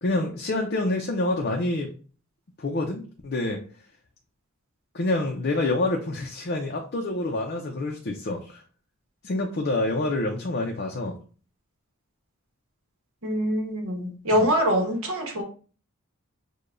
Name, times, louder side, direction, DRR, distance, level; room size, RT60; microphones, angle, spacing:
voice 1, 0.0-1.9 2.6-3.6 4.9-8.6 9.2-11.2 14.3-14.5, left 2 dB, 45° left, 1 dB, 0.5 m, -27 dB
voice 2, 13.2-15.4, equal, 70° right, 2 dB, 1.1 m, -24 dB
6.5 x 2.3 x 2.5 m, 0.39 s
head